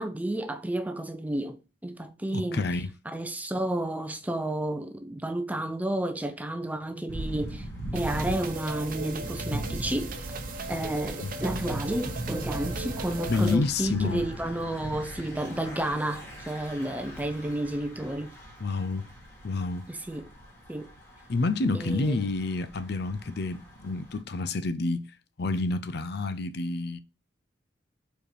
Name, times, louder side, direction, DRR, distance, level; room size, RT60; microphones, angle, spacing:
voice 1, 0.0-2.6 3.1-7.6 7.9-10.3 10.7-18.3 19.9-20.3 20.7-20.9 21.7-22.2, right 1 dB, 10° right, 0.6 m, -31 dB
voice 2, 2.3-2.9 11.2-11.3 13.3-14.2 18.6-19.1 19.4-19.9 21.3-25.1 25.4-27.0, left 3 dB, 60° left, 0.6 m, -28 dB
Thunder / Bicycle, 7.1-24.2, right 1 dB, 15° left, 1.9 m, -39 dB
sound 1, 7.9-13.6, right 3 dB, 50° right, 0.8 m, -38 dB
4.9 x 4.6 x 4.9 m
head